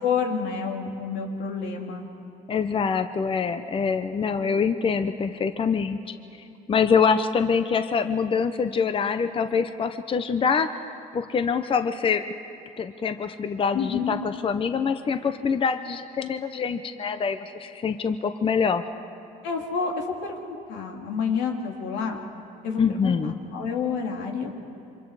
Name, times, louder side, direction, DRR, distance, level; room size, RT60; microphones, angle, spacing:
voice 1, 0.0-2.1 13.7-14.1 19.4-22.2 22.6-24.5, left 6 dB, 90° left, 1 dB, 2.7 m, -29 dB
voice 2, 2.5-6.0 6.7-10.7 11.1-12.2 12.8-18.8 22.8-23.3, left 6 dB, 30° left, 9 dB, 0.8 m, -25 dB
28.5 x 25.5 x 4.9 m, 2.7 s
cardioid pair, 110°, 17 cm